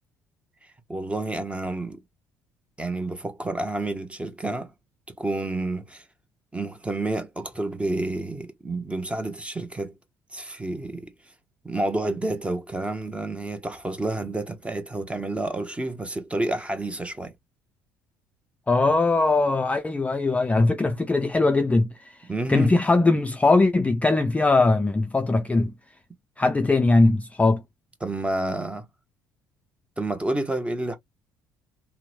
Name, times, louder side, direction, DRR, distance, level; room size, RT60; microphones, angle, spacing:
voice 1, 0.9-2.0 2.8-4.7 5.2-6.0 6.5-9.9 10.3-11.1 11.6-17.3 22.3-22.8 28.0-28.9 30.0-31.0, right 2 dB, 15° right, 0.8 m, -29 dB
voice 2, 18.7-21.9 22.5-25.7 26.4-27.6, left 3 dB, 15° left, 0.4 m, -20 dB
2.9 x 2.1 x 2.4 m
hypercardioid pair, 55°, 9 cm